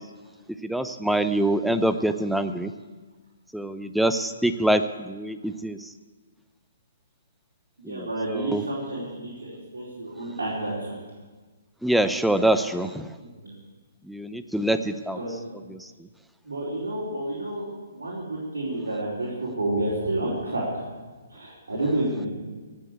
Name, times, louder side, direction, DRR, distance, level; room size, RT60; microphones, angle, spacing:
voice 1, 0.7-2.7 3.5-4.8 5.1-5.8 7.9-8.1 8.5-8.6 11.8-13.0 14.1-15.2, right 1 dB, ahead, 10 dB, 0.6 m, -24 dB
voice 2, 7.8-11.0 13.2-13.5 15.1-15.4 16.4-17.7 17.9-20.8 21.3-22.3, right 1 dB, 80° right, -7 dB, 4.6 m, -30 dB
17.5 x 7.6 x 8.3 m, 1.3 s
figure-of-eight pair, 135°, 0 cm